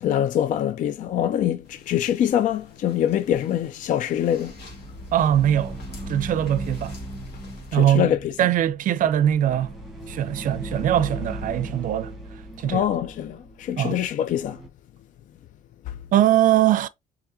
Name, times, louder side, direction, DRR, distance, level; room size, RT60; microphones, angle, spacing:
voice 1, 0.0-4.6 7.7-8.3 12.6-14.6 15.9-16.0, left 10 dB, 50° left, 0.4 m, -24 dB
sound 1, 1.6-7.8, left 3 dB, 80° left, 1.8 m, -50 dB
sound 2, 4.3-14.7, right 1 dB, ahead, 1.5 m, -37 dB
voice 2, 5.1-5.8 6.1-7.0 7.7-8.1 8.4-9.7 10.1-12.1 12.6-12.9 13.8-14.0 16.1-16.9, right 11 dB, 55° right, 0.5 m, -21 dB
3.6 x 3.5 x 2.7 m
cardioid pair, 110°, 17 cm